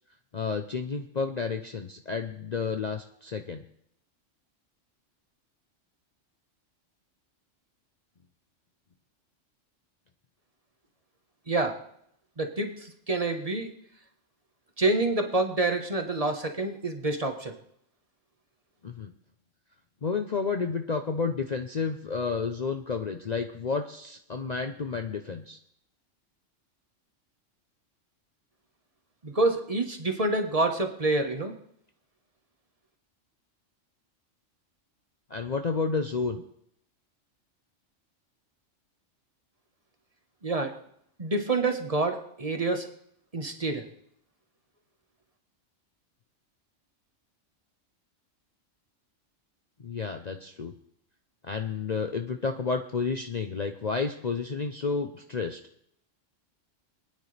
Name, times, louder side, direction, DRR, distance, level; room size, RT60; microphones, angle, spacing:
voice 1, 0.3-3.6 18.8-19.1 20.0-25.6 35.3-36.4 49.8-50.7 51.4-55.6, left 4 dB, 40° left, 5 dB, 0.7 m, -31 dB
voice 2, 12.4-13.7 14.8-17.5 29.2-31.5 40.4-40.7 41.2-42.9 43.3-43.8, right 2 dB, 30° right, 4 dB, 1.2 m, -27 dB
26.5 x 9.6 x 3.3 m, 0.72 s
omnidirectional pair, 1.3 m